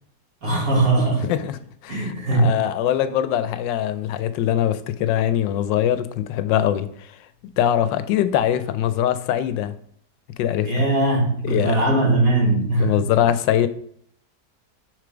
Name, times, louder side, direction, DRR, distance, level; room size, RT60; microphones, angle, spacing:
voice 1, 0.4-1.3 1.9-2.5 10.6-13.1, right 2 dB, 50° right, 2.5 m, -20 dB
voice 2, 1.2-7.1 7.6-9.7 10.4-10.7 11.4-11.8 12.8-13.7, left 11 dB, 85° left, 1.3 m, -22 dB
6.7 x 3.6 x 5.0 m
omnidirectional pair, 1.9 m